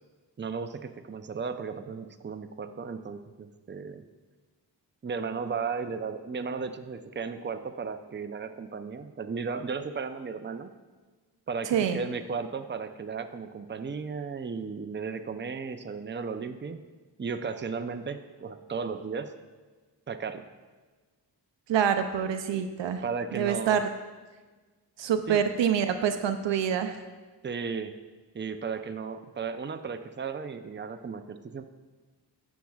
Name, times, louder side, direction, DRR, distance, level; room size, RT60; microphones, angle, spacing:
voice 1, 0.4-4.0 5.0-10.7 11.5-16.8 17.2-19.3 20.1-20.5 23.0-23.8 25.3-25.4 27.4-27.9 28.3-31.6, right 5 dB, 25° right, 8 dB, 0.6 m, -35 dB
voice 2, 21.7-23.0 23.3-23.9 25.0-27.0, right 8 dB, 85° right, 8 dB, 0.6 m, -26 dB
11.5 x 7.1 x 2.4 m, 1.3 s
cardioid pair, 40°, 42 cm